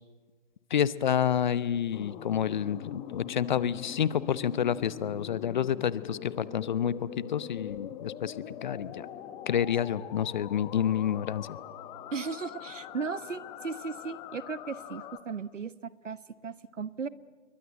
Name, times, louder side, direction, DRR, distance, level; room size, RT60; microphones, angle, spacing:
voice 1, 0.7-9.1 9.5-11.6, left 9 dB, 40° left, 18 dB, 0.8 m, -29 dB
sound 1, 1.9-15.2, left 10 dB, 10° left, 0.9 m, -43 dB
voice 2, 12.1-17.1, right 5 dB, 75° right, 17 dB, 1.3 m, -36 dB
28.5 x 23.0 x 8.1 m, 1.4 s
figure-of-eight pair, 140°, 38 cm